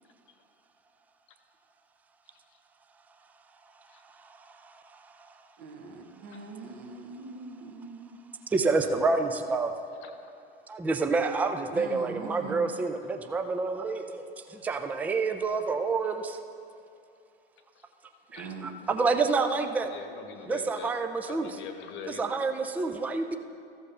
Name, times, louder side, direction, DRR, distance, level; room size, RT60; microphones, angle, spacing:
voice 1, 4.2-5.3 8.5-9.7 10.7-14.2 14.5-16.4 18.3-19.9 20.5-21.5 22.1-23.4, right 4 dB, 5° right, 7 dB, 0.4 m, -28 dB
voice 2, 5.6-8.2 11.7-12.7 18.4-19.0, right 4 dB, 45° right, 3 dB, 1.3 m, -42 dB
voice 3, 19.8-20.9 21.3-22.3, left 6 dB, 40° left, 7 dB, 1.0 m, -43 dB
14.0 x 5.2 x 5.5 m, 2.5 s
figure-of-eight pair, 85°, 31 cm